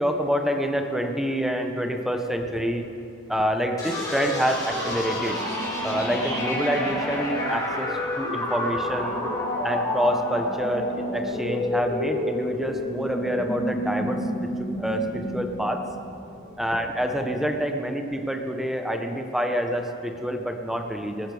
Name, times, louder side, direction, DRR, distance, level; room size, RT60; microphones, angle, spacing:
voice 1, 0.0-2.9 3.3-5.4 5.8-9.2 9.6-15.8 16.6-21.3, equal, ahead, 4 dB, 1.0 m, -27 dB
sound 1, 3.8-17.4, left 1 dB, 20° left, 4.7 m, -29 dB
19.0 x 13.5 x 5.0 m, 2.7 s
head